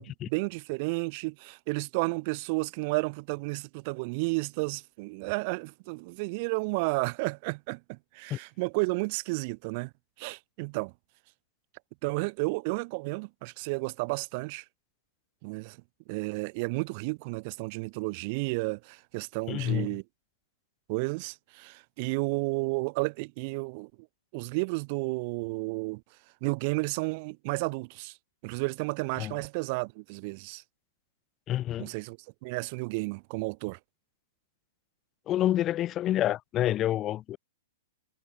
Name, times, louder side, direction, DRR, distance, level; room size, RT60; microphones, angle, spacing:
voice 1, 0.0-9.9 10.2-10.9 12.0-14.6 15.4-15.8 16.1-20.0 20.9-23.9 24.3-26.0 26.4-28.1 28.4-30.6 31.8-33.8, right 29 dB, 40° right, 2.4 m, -32 dB
voice 2, 19.5-19.9 29.2-29.4 31.5-31.9 35.3-37.4, left 13 dB, 25° left, 3.1 m, -28 dB
hypercardioid pair, 150°, 0 cm